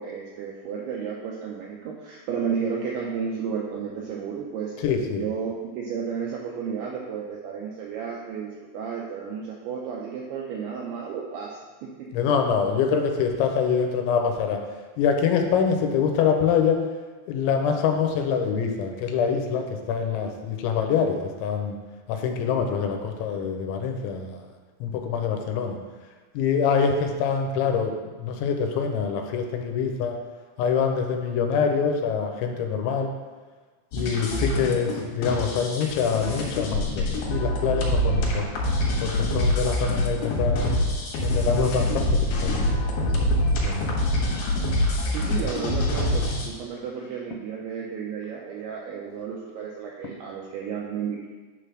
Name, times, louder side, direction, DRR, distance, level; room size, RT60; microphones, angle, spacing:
voice 1, 0.0-4.7 5.1-12.1 45.1-51.3, right 6 dB, 85° right, -2 dB, 2.2 m, -32 dB
voice 2, 4.8-5.2 12.1-14.6 15.0-16.8 17.3-21.8 22.1-24.4 24.8-25.8 26.3-30.2 30.6-33.1 33.9-38.5 39.0-40.8 41.2-43.3 43.6-44.1, left 6 dB, 85° left, 4 dB, 3.0 m, -25 dB
sound 1, 33.9-46.5, left 1 dB, 65° left, 3.0 m, -25 dB
9.7 x 3.3 x 6.3 m, 1.3 s
omnidirectional pair, 5.4 m